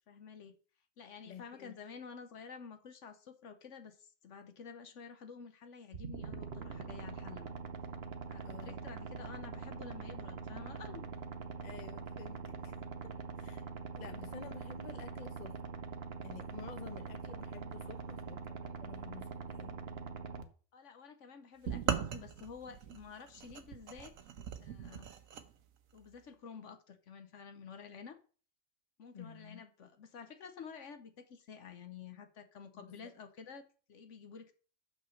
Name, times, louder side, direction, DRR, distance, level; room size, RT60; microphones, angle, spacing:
voice 1, 0.1-0.6 1.0-7.5 8.3-11.1 17.8-18.2 20.7-24.1 24.6-25.1 25.9-28.2 29.0-34.5, left 6 dB, 65° left, 1.2 m, -50 dB
voice 2, 1.2-1.7 8.4-8.8 11.6-12.8 13.0-13.6 13.9-15.6 16.2-19.8 29.1-29.6 32.7-33.1, left 6 dB, 40° left, 0.9 m, -51 dB
sound 1, 5.9-20.4, right 5 dB, 55° right, 1.1 m, -44 dB
sound 2, 21.7-25.5, right 8 dB, 85° right, 1.3 m, -39 dB
6.3 x 6.2 x 6.4 m
omnidirectional pair, 1.4 m